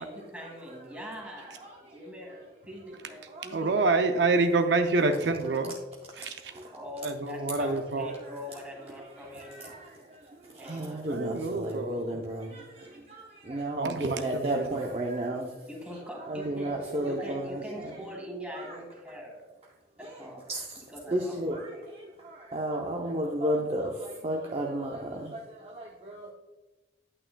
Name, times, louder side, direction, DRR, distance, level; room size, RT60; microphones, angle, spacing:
voice 1, 0.0-3.9 4.3-4.4 6.7-9.8 10.5-11.0 15.7-16.7 17.0-19.4 20.0-20.5 20.9-21.3, equal, 5° right, -1 dB, 1.8 m, -42 dB
voice 2, 1.2-2.4 3.3-3.9 5.1-5.6 6.1-6.8 8.1-15.9 16.2-18.0 18.5-18.8 20.0-26.3, right 1 dB, 35° right, -1 dB, 0.6 m, -35 dB
voice 3, 3.5-5.7 6.2-6.3 7.0-8.1 11.1-12.0 13.8-14.4, right 3 dB, 75° right, 6 dB, 0.5 m, -26 dB
8.9 x 8.7 x 2.3 m, 1.2 s
head